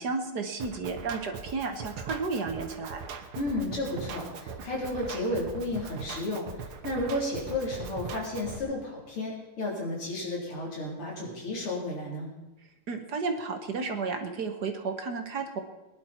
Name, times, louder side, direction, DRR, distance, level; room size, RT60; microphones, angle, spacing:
voice 1, 0.0-3.0 12.9-15.6, right 4 dB, 55° right, 6 dB, 1.5 m, -32 dB
Drum kit, 0.6-8.6, right 6 dB, 80° right, 2.0 m, -40 dB
voice 2, 3.3-12.3, left 1 dB, 85° left, -3 dB, 4.7 m, -32 dB
20.5 x 11.0 x 4.4 m, 1.0 s
omnidirectional pair, 2.4 m